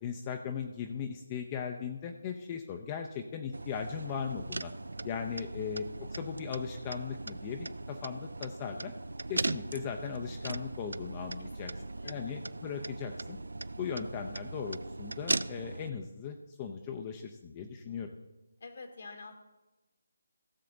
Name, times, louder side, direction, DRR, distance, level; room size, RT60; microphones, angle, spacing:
voice 1, 0.0-4.7 5.0-8.9 9.3-11.7 12.0-13.4 13.8-18.1, left 7 dB, 25° left, 4 dB, 0.6 m, -38 dB
sound 1, 3.5-15.9, right 2 dB, 75° right, 0.4 m, -39 dB
voice 2, 11.4-12.2 18.6-19.3, left 3 dB, 60° left, 4 dB, 1.5 m, -48 dB
16.5 x 6.7 x 3.9 m, 1.1 s
figure-of-eight pair, 155°, 0 cm